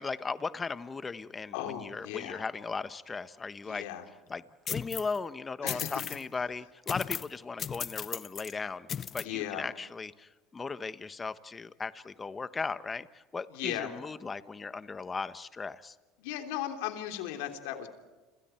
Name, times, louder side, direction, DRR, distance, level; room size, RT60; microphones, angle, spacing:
voice 1, 0.0-3.8 4.3-4.4 4.7-15.9, left 4 dB, 25° left, 13 dB, 1.2 m, -37 dB
voice 2, 1.5-2.4 3.7-4.0 5.6-5.9 9.2-9.6 13.5-14.0 16.2-17.9, left 12 dB, 80° left, 5 dB, 3.2 m, -36 dB
sound 1, 4.7-5.2 5.7-6.2 6.9-7.3 7.6-8.5 8.9-9.2, left 8 dB, 40° left, 0.7 m, -36 dB
30.0 x 26.5 x 4.5 m, 1.3 s
supercardioid pair, 95°, 0 cm